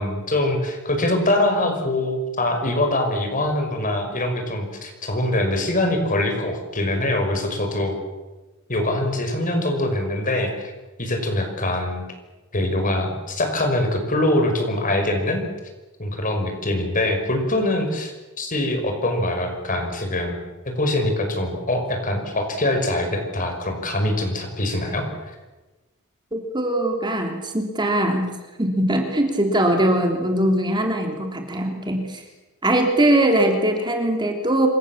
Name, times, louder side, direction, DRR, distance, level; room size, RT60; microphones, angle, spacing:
voice 1, 0.0-7.9 8.7-10.7 11.0-12.0 12.5-15.4 16.0-20.4 20.6-25.3, left 1 dB, 40° left, 5 dB, 5.8 m, -23 dB
voice 2, 26.3-28.3 28.6-32.2 32.6-34.7, right 1 dB, 20° right, 3 dB, 3.2 m, -21 dB
27.5 x 25.0 x 7.4 m, 1.2 s
head